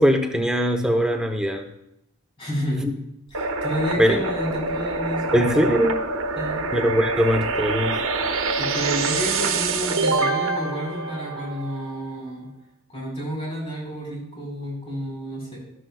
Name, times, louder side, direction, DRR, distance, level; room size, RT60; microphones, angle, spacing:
voice 1, 0.0-1.6 2.8-2.9 4.0-4.2 5.3-5.9 6.7-7.9, equal, 5° right, 3 dB, 0.8 m, -21 dB
voice 2, 2.4-2.9 3.3-5.5 6.4-6.6 8.5-12.5 12.9-15.6, equal, 25° left, -3 dB, 4.4 m, -30 dB
sound 1, 3.3-12.0, right 3 dB, 75° right, 1.0 m, -26 dB
12.5 x 12.5 x 2.3 m, 0.83 s
head